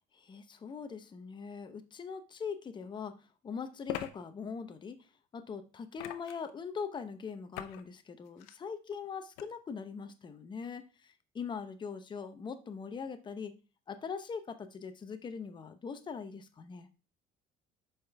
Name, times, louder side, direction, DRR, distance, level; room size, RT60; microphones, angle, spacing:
voice 1, 0.1-3.1 3.4-5.0 5.3-13.5 13.9-16.9, left 6 dB, 25° left, 0.8 m, -41 dB
sound 1, 2.4-2.5 3.9-4.1 6.0-6.5 7.5-7.8 8.3-8.6 9.4-9.5, left 12 dB, 85° left, 0.6 m, -40 dB
6.8 x 5.2 x 3.4 m
cardioid pair, 110°, 17 cm